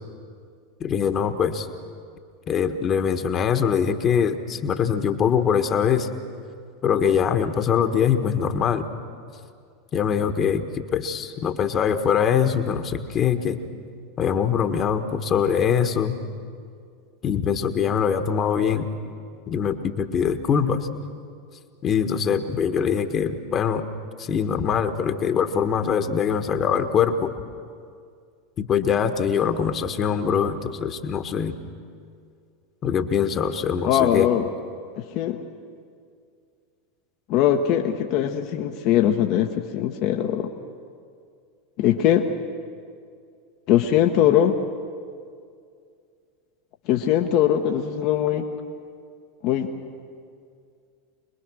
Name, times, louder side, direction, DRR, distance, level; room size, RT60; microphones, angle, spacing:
voice 1, 0.8-1.7 2.5-6.1 6.8-8.8 9.9-13.6 14.2-16.1 17.2-18.9 19.5-20.9 21.8-23.9 24.2-27.3 28.6-31.5 32.8-34.3, left 7 dB, 35° left, 7 dB, 1.4 m, -23 dB
voice 2, 33.8-34.5 35.0-35.4 37.3-40.5 41.8-42.3 43.7-44.6 46.9-48.4 49.4-49.7, left 10 dB, 55° left, 3 dB, 1.1 m, -21 dB
25.0 x 20.5 x 6.3 m, 2.2 s
hypercardioid pair, 90°, 0 cm